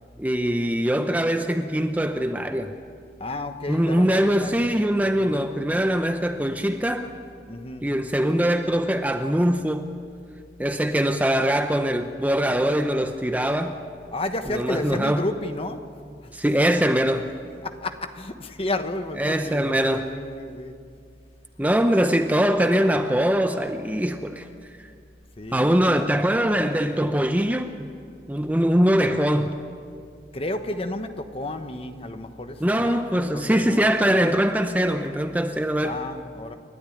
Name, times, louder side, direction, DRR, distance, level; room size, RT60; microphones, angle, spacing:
voice 1, 0.2-2.7 3.7-7.1 7.8-9.9 10.6-13.8 14.5-15.3 16.3-17.3 19.2-20.1 21.6-24.5 25.5-27.9 28.3-29.6 32.6-36.0, equal, 10° right, 0.7 m, -22 dB
voice 2, 3.2-4.7 5.0-5.3 7.5-7.9 14.1-15.9 17.6-20.7 25.4-25.6 30.3-33.8 35.8-36.6, left 2 dB, 35° left, 1.2 m, -32 dB
29.0 x 12.5 x 9.3 m
head